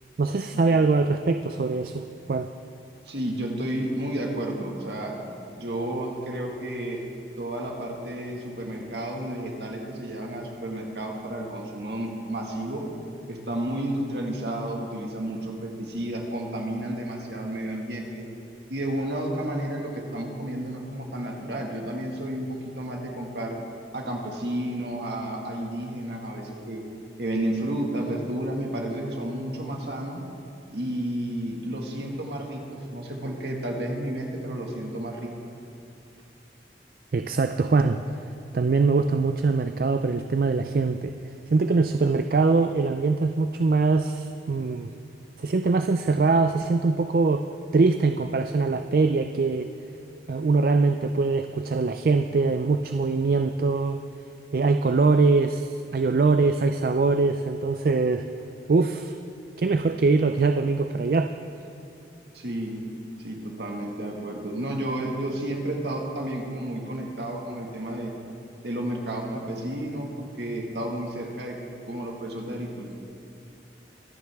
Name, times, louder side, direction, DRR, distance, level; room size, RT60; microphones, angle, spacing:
voice 1, 0.2-2.5 37.1-38.0 38.5-41.2 41.5-44.9 45.4-47.5 47.7-49.7 50.3-54.0 54.5-58.3 58.7-59.1 59.6-61.3, right 3 dB, 55° right, 8 dB, 0.4 m, -22 dB
voice 2, 3.1-7.0 7.4-12.9 13.3-18.3 18.7-23.6 23.9-26.8 27.2-30.2 30.7-35.3 62.3-62.8 63.2-68.1 68.6-71.6 71.8-72.9, right 1 dB, 75° right, 1 dB, 1.8 m, -31 dB
24.0 x 9.6 x 3.5 m, 2.6 s
head